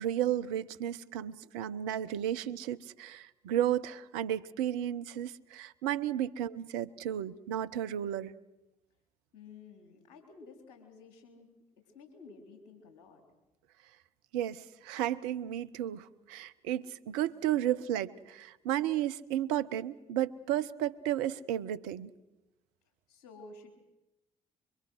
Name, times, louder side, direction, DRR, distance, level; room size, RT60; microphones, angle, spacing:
voice 1, 0.0-8.3 14.3-22.1, right 11 dB, 75° right, 13 dB, 0.8 m, -33 dB
voice 2, 9.3-13.2 23.1-23.7, left 4 dB, 80° left, 3 dB, 3.8 m, -53 dB
25.0 x 24.0 x 6.4 m, 0.97 s
figure-of-eight pair, 45°, 19 cm